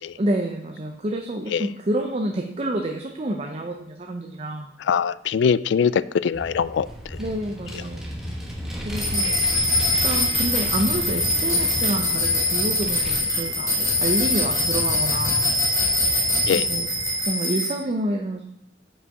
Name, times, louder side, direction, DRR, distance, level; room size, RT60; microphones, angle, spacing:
voice 1, 0.2-4.7 7.2-8.1 8.8-9.7 10.0-15.5 16.5-16.9 17.3-18.5, right 1 dB, 35° right, 2 dB, 0.6 m, -28 dB
voice 2, 4.8-7.2 9.2-9.3 16.5-16.6, left 7 dB, 70° left, 17 dB, 0.3 m, -23 dB
Vehicle, 6.3-17.2, equal, ahead, 1.4 m, -34 dB
sound 1, 9.0-17.7, left 1 dB, 15° left, 3.0 m, -23 dB
7.6 x 5.5 x 4.9 m, 0.74 s
head